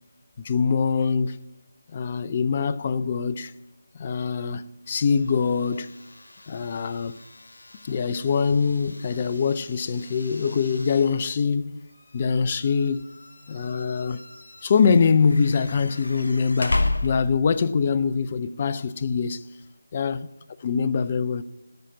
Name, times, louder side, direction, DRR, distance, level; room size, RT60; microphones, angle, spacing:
voice 1, 0.4-1.4 1.9-3.5 3.9-5.9 6.5-7.2 7.8-11.8 12.1-13.0 13.5-14.2 14.6-19.4 19.9-20.3 20.6-21.4, left 5 dB, 30° left, 0.4 m, -23 dB
sound 1, 4.8-17.6, left 2 dB, 60° left, 0.9 m, -35 dB
13.5 x 5.7 x 8.6 m
figure-of-eight pair, 160°, 0 cm